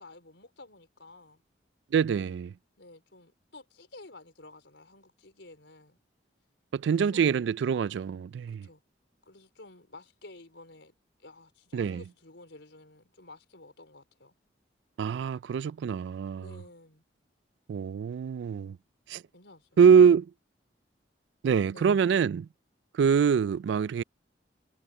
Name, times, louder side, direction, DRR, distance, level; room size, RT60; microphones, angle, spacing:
voice 1, 0.0-1.4 2.8-6.0 6.9-7.3 8.5-8.8 9.2-14.3 16.4-17.0 19.3-19.8 21.7-22.0, left 2 dB, 80° left, 4.4 m, -52 dB
voice 2, 1.9-2.5 6.7-8.7 11.7-12.0 15.0-16.4 17.7-18.8 19.1-19.2 19.8-20.3 21.4-22.5 22.9-24.0, right 7 dB, 75° right, 0.3 m, -24 dB
head